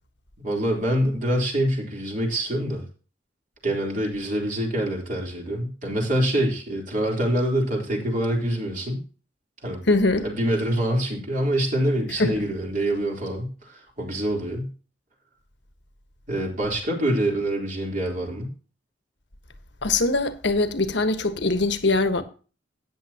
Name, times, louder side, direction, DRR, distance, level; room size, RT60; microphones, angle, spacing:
voice 1, 0.4-2.8 3.6-9.0 9.6-9.8 10.2-14.7 16.3-18.5, right 1 dB, 45° right, 3.8 m, -25 dB
voice 2, 9.9-10.3 12.2-12.4 19.8-22.2, left 2 dB, 65° left, 1.4 m, -22 dB
13.5 x 9.5 x 3.0 m
head